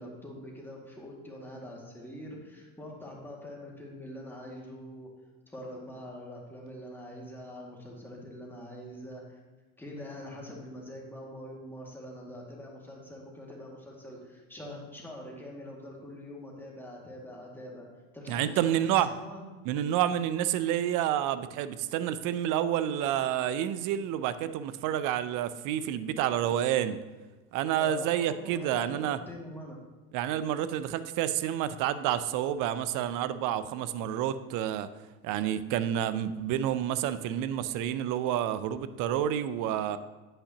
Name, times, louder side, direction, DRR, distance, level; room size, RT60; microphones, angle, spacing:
voice 1, 0.0-5.1 5.5-9.4 9.8-17.9 18.1-19.4 27.8-29.8, left 1 dB, 5° left, -3 dB, 2.0 m, -44 dB
voice 2, 18.3-19.1 19.7-27.0 27.5-29.2 30.1-34.9 35.2-40.0, right 11 dB, 45° right, 14 dB, 0.6 m, -29 dB
9.6 x 8.8 x 2.9 m, 1.2 s
supercardioid pair, 110°, 43 cm